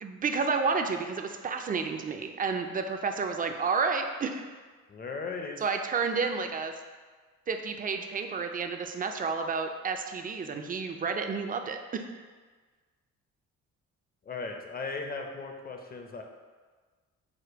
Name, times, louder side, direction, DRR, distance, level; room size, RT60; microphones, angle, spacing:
voice 1, 0.0-4.5 5.6-6.7 7.5-12.1, right 5 dB, 30° right, 5 dB, 0.4 m, -30 dB
voice 2, 4.9-5.6 14.2-16.2, left 4 dB, 30° left, 3 dB, 0.6 m, -37 dB
5.0 x 2.2 x 4.5 m, 1.4 s
cardioid pair, 90°, 30 cm